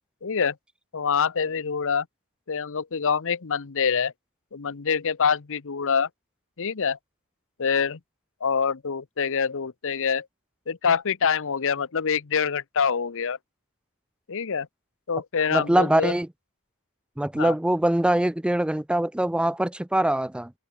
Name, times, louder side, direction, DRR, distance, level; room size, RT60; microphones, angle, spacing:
voice 1, 0.2-0.5 0.9-2.1 2.5-4.1 4.5-6.1 6.6-7.0 7.6-8.0 8.4-10.3 10.7-13.4 14.3-14.7 15.1-16.1 17.4-17.5, left 6 dB, 60° left, 0.8 m, -25 dB
voice 2, 15.5-16.3 17.2-20.5, right 1 dB, 5° right, 0.3 m, -23 dB
head